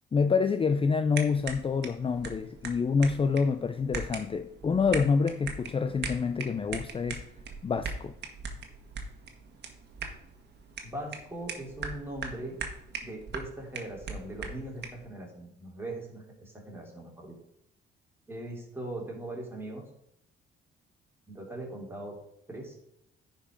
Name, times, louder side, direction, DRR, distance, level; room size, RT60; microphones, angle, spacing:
voice 1, 0.1-7.2 7.6-8.1, left 5 dB, 25° left, 10 dB, 0.5 m, -27 dB
sound 1, 1.1-15.1, right 4 dB, 60° right, 1.6 m, -41 dB
voice 2, 10.8-12.6 13.0-17.4 18.3-19.9 21.3-22.2 22.5-22.8, right 1 dB, 10° right, -1 dB, 3.3 m, -40 dB
9.8 x 5.2 x 5.2 m, 0.77 s
cardioid pair, 90°, 20 cm